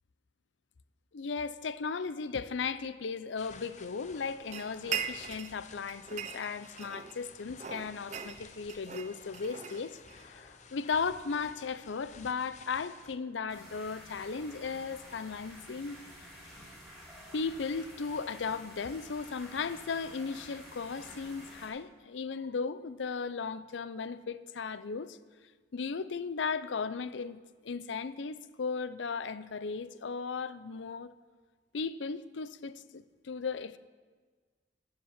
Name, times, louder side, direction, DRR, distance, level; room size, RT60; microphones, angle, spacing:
voice 1, 1.1-16.0 17.3-25.2 25.7-31.1 31.7-33.8, left 5 dB, 80° left, 15 dB, 0.5 m, -36 dB
sound 1, 3.4-13.2, left 4 dB, 40° left, 0.7 m, -54 dB
sound 2, 4.5-5.6 5.9-7.2 7.6-10.3, right 7 dB, 40° right, 0.6 m, -40 dB
sound 3, 13.5-21.7, equal, ahead, 4.0 m, -51 dB
13.0 x 7.7 x 7.3 m, 1.5 s
head